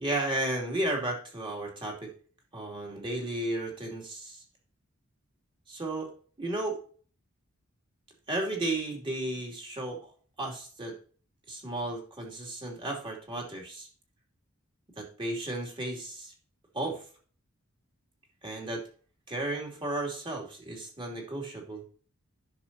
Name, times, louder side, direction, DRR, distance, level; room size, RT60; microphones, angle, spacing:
voice 1, 0.0-2.1 2.5-4.4 5.7-6.1 6.4-6.8 8.3-10.1 10.4-10.9 11.5-13.9 15.0-16.3 16.7-17.0 18.4-18.8 19.3-21.8, right 1 dB, 25° right, 0 dB, 2.7 m, -34 dB
10.0 x 6.6 x 2.8 m, 0.42 s
head